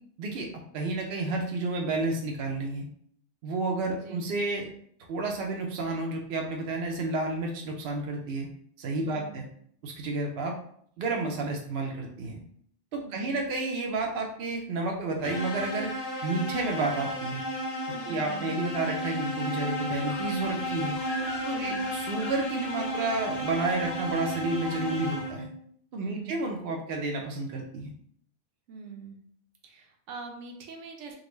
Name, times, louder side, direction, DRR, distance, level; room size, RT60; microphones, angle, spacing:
voice 1, 0.7-2.9 3.4-4.7 5.1-8.5 8.8-9.4 9.8-10.5 11.0-12.4 12.9-15.9 16.2-17.4 18.1-21.0 21.4-25.5 25.9-27.9, right 2 dB, 65° right, 1 dB, 0.7 m, -31 dB
voice 2, 3.9-4.3 9.0-9.5 13.0-13.4 17.9-18.6 21.5-21.9 26.0-26.5 28.7-29.2 29.6-31.2, right 5 dB, 80° right, 2 dB, 1.0 m, -44 dB
sound 1, 15.2-25.6, equal, 80° left, 1.1 m, -33 dB
sound 2, 20.1-25.3, equal, 55° left, 1.3 m, -45 dB
3.7 x 2.2 x 3.0 m, 0.63 s
omnidirectional pair, 1.2 m